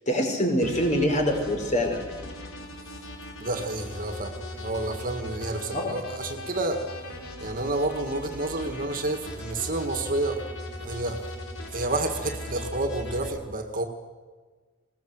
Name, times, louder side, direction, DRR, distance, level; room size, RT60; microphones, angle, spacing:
voice 1, 0.1-2.0 5.7-6.0, equal, 35° left, 3 dB, 4.8 m, -24 dB
sound 1, 0.6-13.3, left 1 dB, 85° left, 4.6 m, -39 dB
voice 2, 3.4-6.8 7.4-10.4 10.8-11.3 11.7-13.9, right 2 dB, 40° right, 5 dB, 1.9 m, -30 dB
20.5 x 19.0 x 7.9 m, 1.4 s
head